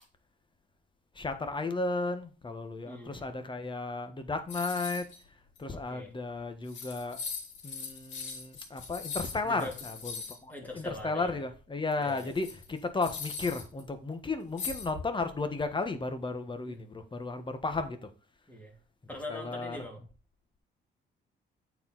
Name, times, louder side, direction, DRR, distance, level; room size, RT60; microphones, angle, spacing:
voice 1, 1.1-5.1 5.6-7.2 7.6-10.1 10.4-18.1 19.3-19.8, left 3 dB, 25° left, 1.4 m, -34 dB
voice 2, 2.8-3.3 5.7-6.1 9.4-9.7 10.5-11.4 12.0-12.3 16.6-16.8 18.5-18.8 19.1-20.0, left 2 dB, 10° left, 3.1 m, -42 dB
sound 1, 4.5-5.2 5.6-5.7 6.4-6.5 6.7-10.4 11.9-13.8 14.6-15.3, left 5 dB, 70° left, 2.8 m, -40 dB
8.4 x 4.7 x 4.1 m
cardioid pair, 90°, 20 cm